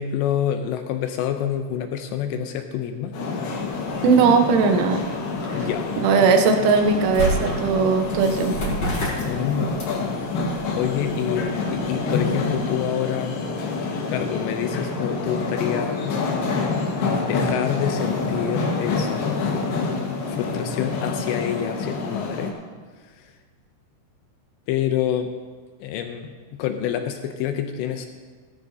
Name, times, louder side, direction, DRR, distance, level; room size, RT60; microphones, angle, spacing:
voice 1, 0.0-3.1 5.5-5.9 9.3-9.8 10.4-13.4 13.8-16.2 16.5-16.8 17.2-19.6 20.3-22.5 23.2-23.3 24.7-25.3 25.8-28.1, left 9 dB, 80° left, 6 dB, 2.6 m, -27 dB
sound 1, 3.1-22.5, left 4 dB, 65° left, 3.0 m, -27 dB
sound 2, 3.5-12.6, right 1 dB, 30° left, 3.7 m, -33 dB
voice 2, 4.0-5.0 5.5-5.6 6.0-8.7, right 4 dB, 80° right, 5 dB, 3.5 m, -19 dB
17.0 x 13.5 x 2.8 m, 1.5 s
omnidirectional pair, 5.7 m